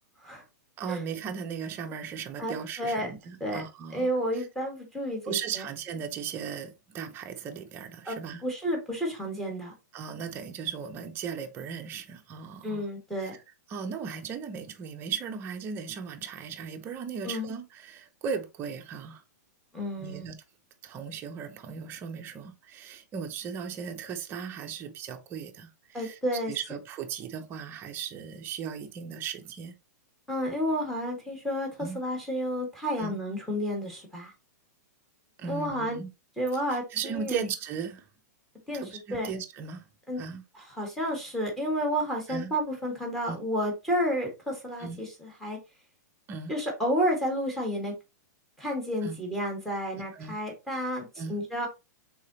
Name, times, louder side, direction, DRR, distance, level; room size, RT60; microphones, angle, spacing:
voice 1, 0.8-4.1 4.3-4.4 5.2-8.4 9.9-12.8 13.2-13.3 13.7-19.2 20.0-20.4 20.8-26.2 26.5-29.8 31.8-32.0 33.0-33.2 35.4-36.1 36.7-38.1 38.7-39.9 40.2-40.4 42.3-42.5 43.3-43.4 44.8-45.0 46.3-46.5 49.0-49.2 50.1-50.4 51.2-51.4, right 7 dB, 25° right, 0.7 m, -37 dB
voice 2, 2.4-3.1 3.4-3.6 3.9-5.6 8.0-9.7 12.6-13.4 17.2-17.5 19.7-20.3 25.9-26.5 30.3-31.7 31.9-34.3 35.5-36.0 36.4-37.4 38.7-38.8 39.1-39.3 40.1-40.2 40.5-45.6 46.5-47.9 48.6-51.7, equal, 5° left, 1.6 m, -31 dB
4.7 x 3.8 x 2.8 m
hypercardioid pair, 155°, 10 cm